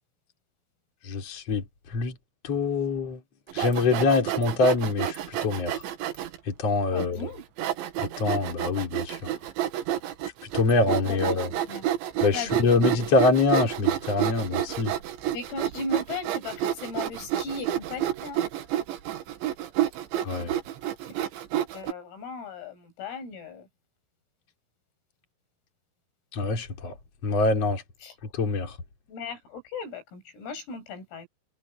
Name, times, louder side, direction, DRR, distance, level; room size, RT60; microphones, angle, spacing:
voice 1, 1.0-2.1 2.4-3.2 3.5-5.8 6.5-7.3 8.0-9.3 10.5-11.5 12.2-14.9 20.2-20.5 26.3-27.0 27.2-27.8 28.3-28.8, left 3 dB, 30° left, 4.9 m, -25 dB
Sawing, 3.5-6.4 7.0-7.1 7.6-21.9, right 11 dB, 70° right, 4.0 m, -29 dB
voice 2, 6.9-7.5 10.9-11.2 11.7-11.9 12.3-13.0 15.3-18.5 21.7-23.7 28.0-28.1 29.1-31.3, left 4 dB, 90° left, 9.7 m, -37 dB
omnidirectional pair, 5.8 m